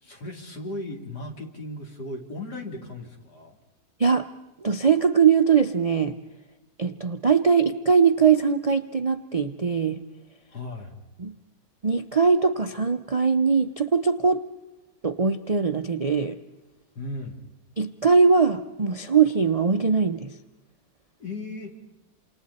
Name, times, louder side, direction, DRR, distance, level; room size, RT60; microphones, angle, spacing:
voice 1, 0.0-3.6 10.5-11.0 17.0-17.4 21.2-21.8, left 2 dB, 75° left, 1 dB, 3.8 m, -36 dB
voice 2, 4.6-6.2 6.8-10.0 11.2-11.4 11.8-14.4 15.0-16.4 17.8-20.3, right 5 dB, 45° right, 8 dB, 0.4 m, -21 dB
28.0 x 28.0 x 4.2 m, 1.1 s
omnidirectional pair, 1.8 m